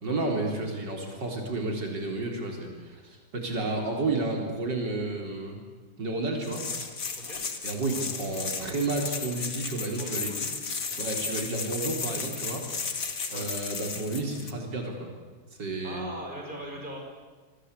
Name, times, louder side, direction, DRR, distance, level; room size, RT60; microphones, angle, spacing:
voice 1, 0.0-5.6 6.0-6.6 7.6-10.4 11.0-12.6 13.3-15.1 15.6-16.1, right 2 dB, 90° right, 2 dB, 4.4 m, -31 dB
sound 1, 6.4-14.5, left 5 dB, 50° left, 2.3 m, -34 dB
voice 2, 10.0-10.6 10.9-11.0 13.3-13.5 15.8-17.0, right 1 dB, 25° right, 1 dB, 6.2 m, -40 dB
28.0 x 23.0 x 8.4 m, 1.3 s
omnidirectional pair, 1.8 m